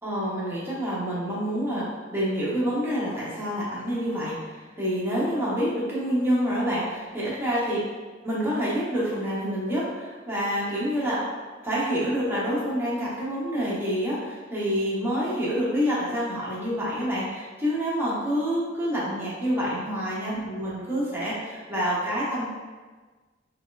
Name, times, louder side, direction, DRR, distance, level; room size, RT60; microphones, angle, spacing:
voice 1, 0.0-7.8 8.2-11.2 11.6-22.5, equal, 10° right, -8 dB, 0.8 m, -27 dB
4.1 x 2.3 x 2.3 m, 1.4 s
head